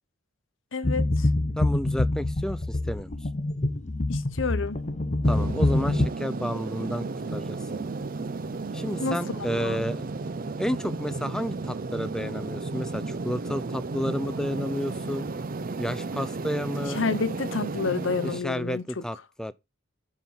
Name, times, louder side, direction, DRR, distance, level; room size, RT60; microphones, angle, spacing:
voice 1, 0.7-1.3 4.1-4.8 9.0-9.2 9.5-9.9 16.9-19.0, left 4 dB, 70° left, 0.9 m, -29 dB
sound 1, 0.8-6.1, left 2 dB, 35° left, 0.8 m, -25 dB
voice 2, 1.6-3.1 5.3-7.9 8.7-10.0 10.6-15.3 15.8-17.0 18.2-19.5, equal, 5° left, 0.4 m, -31 dB
sound 2, 5.2-18.4, right 3 dB, 45° right, 0.5 m, -33 dB
10.0 x 4.5 x 5.5 m
head